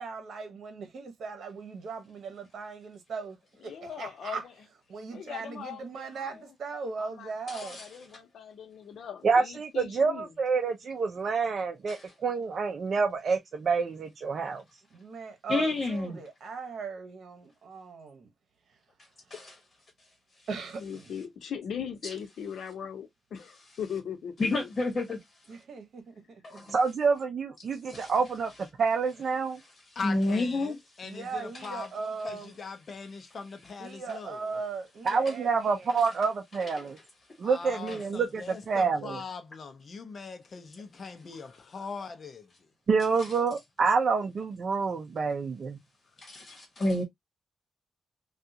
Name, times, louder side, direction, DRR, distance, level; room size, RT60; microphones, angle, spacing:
voice 1, 0.0-4.5 4.9-7.8 14.9-18.3 18.7-18.8 19.3-19.4 20.5-21.1 25.5-26.8 31.0-32.6 33.8-36.0, right 4 dB, 70° right, 1.0 m, -39 dB
voice 2, 3.6-4.4 5.1-6.1 7.0-10.3 20.8-24.7, left 8 dB, 80° left, 0.8 m, -40 dB
voice 3, 7.5-7.8 11.9-12.1 15.5-16.2 19.3-19.6 22.0-22.1 24.4-25.2 26.4-26.7 27.9-28.1 30.0-30.8 35.2-35.3 36.8-36.9 37.9-38.0 43.2-43.3 46.2-47.0, left 2 dB, 30° left, 1.2 m, -30 dB
voice 4, 9.2-12.0 12.2-14.6 26.7-28.5 28.8-29.6 35.1-37.0 37.4-39.2 42.9-45.8, right 5 dB, 50° right, 0.5 m, -27 dB
voice 5, 30.0-34.4 37.4-42.7, left 5 dB, 45° left, 0.6 m, -41 dB
3.5 x 2.4 x 2.7 m
wide cardioid pair, 130°, 0 cm